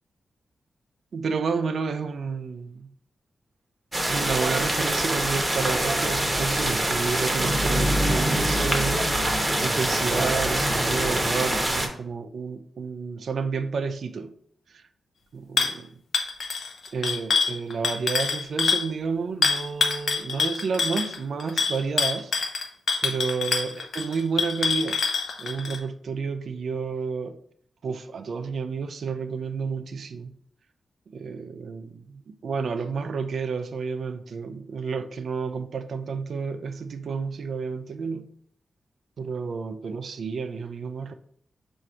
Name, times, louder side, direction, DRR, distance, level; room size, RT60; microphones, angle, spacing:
voice 1, 1.1-2.9 4.1-14.3 14.7-14.8 15.3-15.9 16.9-22.3 23.0-25.0 25.4-27.4 27.8-30.4 31.1-38.3 39.2-41.1, right 5 dB, 75° right, 0.4 m, -30 dB
sound 1, 3.9-11.9, right 1 dB, 20° right, 0.9 m, -24 dB
sound 2, 15.6-15.8 16.1-18.9 19.4-25.8, left 5 dB, 70° left, 0.6 m, -25 dB
4.7 x 2.6 x 4.3 m
cardioid pair, 75°, 0 cm